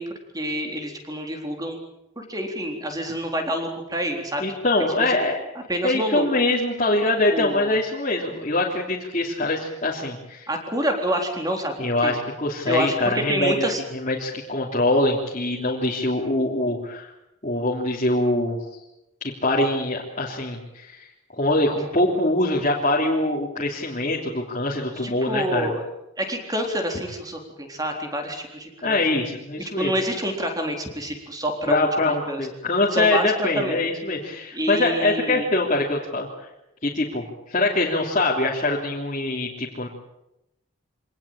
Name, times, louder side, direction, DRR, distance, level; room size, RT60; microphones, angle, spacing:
voice 1, 0.0-1.8 2.2-4.5 5.0-5.2 5.7-6.3 7.3-7.7 10.5-11.7 12.0-12.2 12.6-13.8 22.1-22.2 25.0-25.8 26.2-29.0 29.8-32.5 32.9-33.8 34.5-35.5, equal, 15° right, 3 dB, 3.8 m, -27 dB
voice 2, 4.4-5.4 5.8-10.5 11.8-13.6 13.9-17.1 17.4-18.6 19.2-21.1 21.3-25.7 28.8-29.9 31.7-36.5 36.8-39.9, left 2 dB, 35° left, -5 dB, 3.3 m, -23 dB
25.5 x 18.5 x 8.9 m, 0.90 s
head